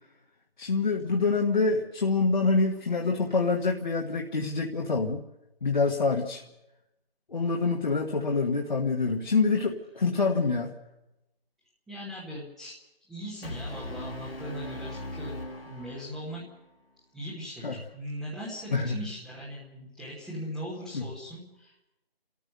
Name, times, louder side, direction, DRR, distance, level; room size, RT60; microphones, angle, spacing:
voice 1, 0.6-5.2 5.6-6.4 7.3-10.7 17.6-17.8 18.7-19.0 20.9-21.1, left 4 dB, 50° left, 1 dB, 1.6 m, -26 dB
voice 2, 11.9-12.8 13.1-15.4 15.7-16.4 17.1-21.9, equal, ahead, -7 dB, 1.1 m, -39 dB
Brass instrument, 13.4-16.5, left 1 dB, 70° left, 2.4 m, -39 dB
29.5 x 14.0 x 6.7 m, 0.94 s
figure-of-eight pair, 155°, 30 cm